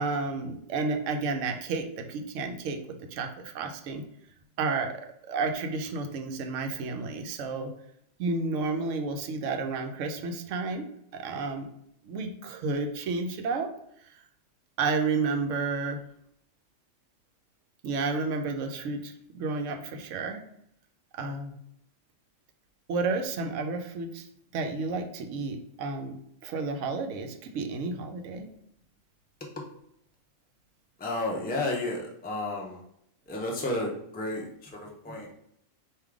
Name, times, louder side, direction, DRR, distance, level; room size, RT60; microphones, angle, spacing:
voice 1, 0.0-4.0 4.6-7.7 8.2-10.9 11.1-11.7 12.0-13.7 14.1-14.2 14.8-16.0 17.8-20.4 21.1-21.5 22.9-24.3 24.5-26.2 26.4-28.5, right 4 dB, 80° right, 5 dB, 1.0 m, -31 dB
voice 2, 31.0-32.8 33.3-35.3, left 2 dB, 10° left, -1 dB, 0.5 m, -32 dB
3.6 x 2.6 x 4.7 m, 0.73 s
omnidirectional pair, 1.3 m